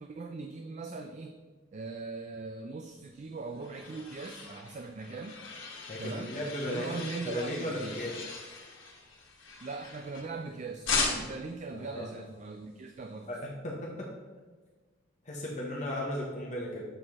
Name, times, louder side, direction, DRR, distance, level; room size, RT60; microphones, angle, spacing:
voice 1, 0.0-1.4 1.7-5.4 6.0-6.4 6.6-8.1 9.6-13.3, right 3 dB, 35° right, 6 dB, 0.4 m, -40 dB
sound 1, 3.1-10.4 10.8-11.5, left 4 dB, 80° left, 1.4 m, -38 dB
voice 2, 5.9-8.2 11.7-12.1 13.3-14.1 15.2-16.8, left 1 dB, 35° left, -3 dB, 1.0 m, -36 dB
7.7 x 5.0 x 3.6 m, 1.3 s
head